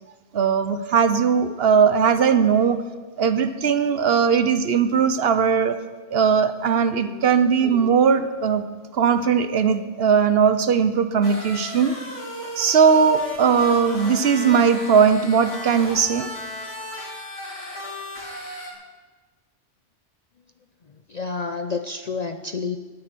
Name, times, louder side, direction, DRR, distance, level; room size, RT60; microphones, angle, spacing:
voice 1, 0.3-2.8 3.2-5.8 6.1-8.6 8.9-12.0 12.6-16.3, right 6 dB, 55° right, 11 dB, 1.0 m, -19 dB
sound 1, 11.2-18.7, left 1 dB, 70° left, 3.2 m, -35 dB
voice 2, 20.9-22.8, left 4 dB, 45° left, 7 dB, 0.5 m, -30 dB
19.0 x 8.9 x 6.1 m, 1.3 s
omnidirectional pair, 1.3 m